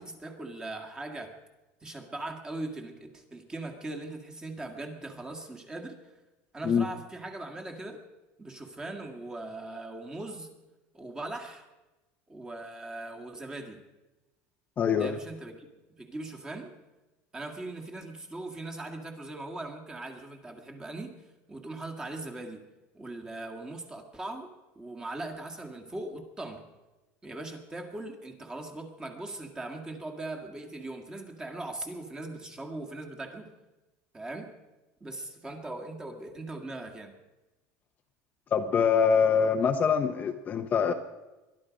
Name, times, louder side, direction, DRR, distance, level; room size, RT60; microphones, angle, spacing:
voice 1, 0.0-1.3 1.8-6.0 6.5-8.0 8.4-10.5 10.9-11.6 12.3-13.8 15.0-15.7 16.0-16.7 17.3-21.1 21.5-22.6 22.9-24.5 24.8-26.7 27.2-33.5 34.1-34.5 35.0-37.1, right 2 dB, 15° right, 3 dB, 1.8 m, -40 dB
voice 2, 14.8-15.2 38.5-40.9, left 6 dB, 25° left, 5 dB, 0.8 m, -24 dB
22.0 x 11.5 x 5.2 m, 1.1 s
cardioid pair, 150°, 6 cm